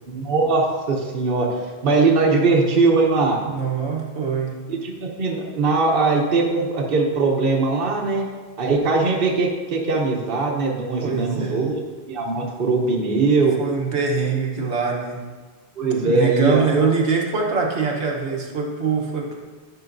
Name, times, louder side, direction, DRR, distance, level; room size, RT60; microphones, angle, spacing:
voice 1, 0.1-3.4 4.7-8.2 8.6-11.8 12.1-13.5 15.8-16.7, right 3 dB, 60° right, -1 dB, 1.1 m, -20 dB
voice 2, 3.5-4.6 11.0-11.7 13.6-15.2 16.0-19.4, right 5 dB, 85° right, -1 dB, 1.3 m, -23 dB
10.5 x 5.5 x 2.6 m, 1.4 s
omnidirectional pair, 1.1 m